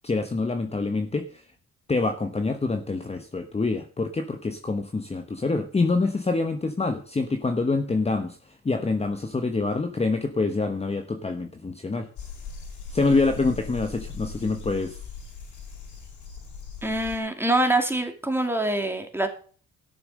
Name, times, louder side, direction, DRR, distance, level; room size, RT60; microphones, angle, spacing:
voice 1, 0.0-1.4 1.9-8.4 8.6-12.1 12.9-15.0, left 3 dB, 20° left, 6 dB, 1.1 m, -26 dB
sound 1, 12.2-17.2, left 5 dB, 75° left, 5.0 m, -39 dB
voice 2, 16.8-19.3, right 1 dB, 10° right, 5 dB, 2.5 m, -25 dB
13.0 x 7.1 x 6.4 m, 0.42 s
cardioid pair, 90°, 30 cm